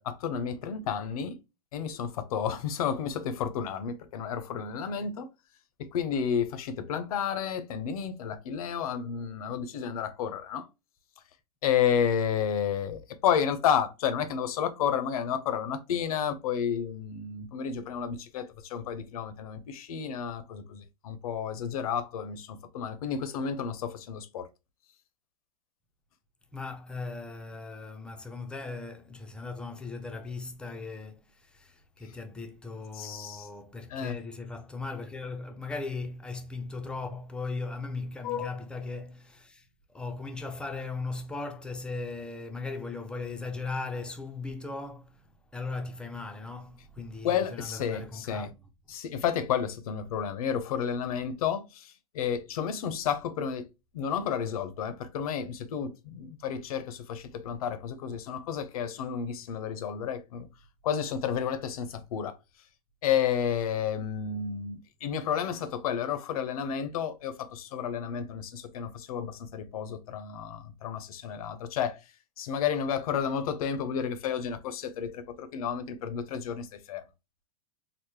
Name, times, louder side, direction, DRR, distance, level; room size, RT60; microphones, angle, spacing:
voice 1, 0.0-1.4 1.7-5.3 5.8-10.7 11.6-24.5 32.9-33.5 33.9-34.2 38.2-38.5 47.2-48.5 48.9-53.7 53.9-60.5 60.8-62.4 63.0-72.0 72.4-77.0, left 8 dB, 65° left, 0.7 m, -31 dB
voice 2, 26.5-48.6 57.3-57.5, left 3 dB, 5° left, 0.5 m, -38 dB
3.8 x 2.1 x 3.1 m
hypercardioid pair, 120°, 20 cm